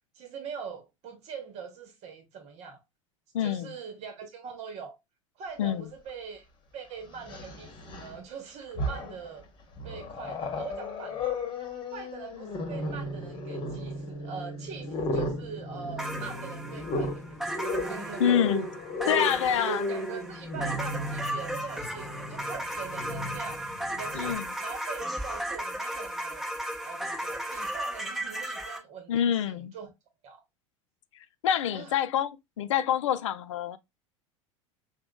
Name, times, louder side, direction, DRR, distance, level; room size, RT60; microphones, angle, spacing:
voice 1, 0.1-2.8 3.4-4.9 5.4-6.5 6.7-9.4 9.8-11.3 11.9-18.7 19.6-26.4 26.8-29.9 30.2-30.4 31.7-32.0, right 6 dB, 45° right, 1.1 m, -42 dB
voice 2, 3.3-3.7 5.6-5.8 18.2-18.7 19.1-19.8 24.2-24.5 29.1-29.7 31.4-32.3 32.6-33.8, left 9 dB, 70° left, 0.5 m, -26 dB
Growling, 6.1-6.2 7.1-8.2 8.6-9.3 9.8-24.3, left 1 dB, 30° left, 1.3 m, -35 dB
sound 1, 16.0-28.8, right 1 dB, ahead, 0.9 m, -35 dB
5.9 x 2.2 x 2.2 m
figure-of-eight pair, 80°, 16 cm